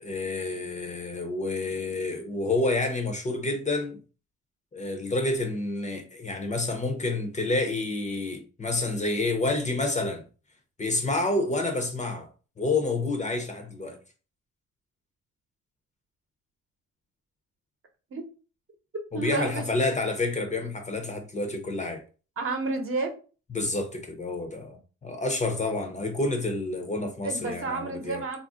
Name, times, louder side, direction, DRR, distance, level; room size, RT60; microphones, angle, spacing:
voice 1, 0.0-4.0 4.7-10.2 10.8-12.3 12.6-14.0 19.1-22.0 23.5-28.2, left 2 dB, 25° left, 0.6 m, -29 dB
voice 2, 19.1-19.9 22.4-23.1 27.2-28.4, right 3 dB, 45° right, 0.8 m, -30 dB
2.4 x 2.0 x 3.6 m
cardioid pair, 90°, 30 cm